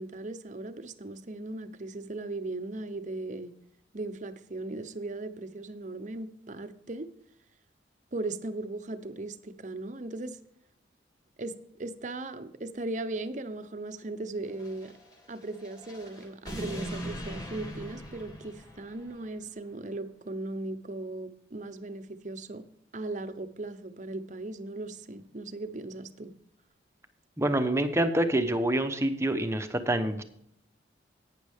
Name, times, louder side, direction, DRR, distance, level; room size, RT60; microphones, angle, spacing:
voice 1, 0.0-3.5 3.9-7.1 8.1-10.4 11.4-15.0 15.3-22.6 22.9-26.3, right 2 dB, 40° right, 0.7 m, -38 dB
sound 1, 14.5-19.2, equal, 20° left, 3.0 m, -41 dB
voice 2, 27.4-30.2, right 1 dB, 15° right, 0.9 m, -26 dB
11.5 x 9.3 x 3.5 m
head